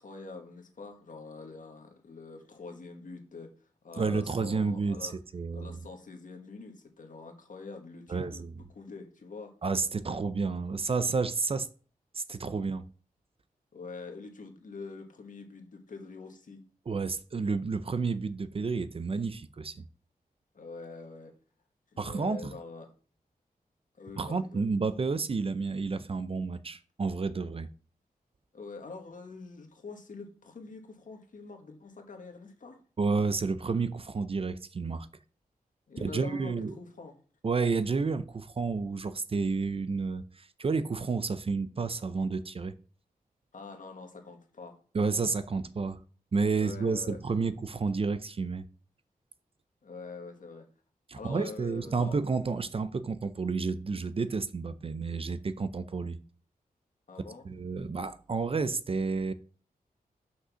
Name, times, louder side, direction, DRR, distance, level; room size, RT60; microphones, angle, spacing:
voice 1, 0.0-5.1 5.5-8.4 8.7-9.5 13.7-16.6 20.5-21.3 21.9-22.9 24.0-24.7 28.5-32.8 35.9-37.2 43.5-44.8 46.5-47.2 49.8-50.7 51.1-52.2 57.1-57.5, left 4 dB, 60° left, 1.7 m, -45 dB
voice 2, 4.0-5.8 8.1-8.5 9.6-11.7 12.1-12.8 16.9-19.8 22.0-22.5 24.2-27.7 33.0-35.1 36.0-36.7 37.4-42.8 44.9-46.0 46.3-48.6 51.1-56.2 57.4-59.3, right 4 dB, 40° right, 0.5 m, -30 dB
6.3 x 5.3 x 6.1 m
wide cardioid pair, 145°, 15 cm